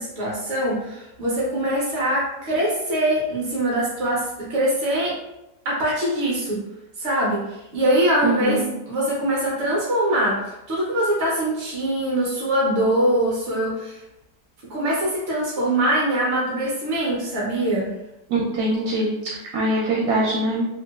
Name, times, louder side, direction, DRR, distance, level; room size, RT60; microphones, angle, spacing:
voice 1, 0.0-5.1 5.6-6.6 7.0-8.6 8.9-10.4 10.7-14.0 14.7-17.9, right 1 dB, 55° right, -5 dB, 0.8 m, -23 dB
voice 2, 8.2-8.6 18.3-20.7, right 1 dB, 75° right, -3 dB, 1.1 m, -23 dB
2.9 x 2.8 x 2.2 m, 0.91 s
omnidirectional pair, 1.8 m